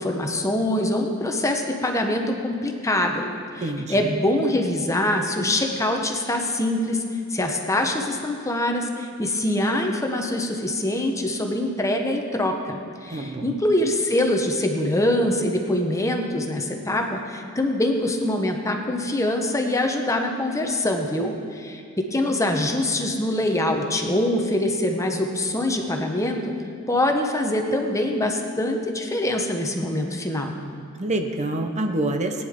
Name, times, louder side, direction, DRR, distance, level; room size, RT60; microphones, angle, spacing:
voice 1, 0.0-7.0 7.3-26.5 26.9-30.5, left 1 dB, 15° left, 3 dB, 0.9 m, -24 dB
voice 2, 3.6-4.1 13.1-13.6 30.5-30.7 31.0-32.4, right 2 dB, 30° right, 5 dB, 0.7 m, -27 dB
18.5 x 9.6 x 3.7 m, 2.4 s
head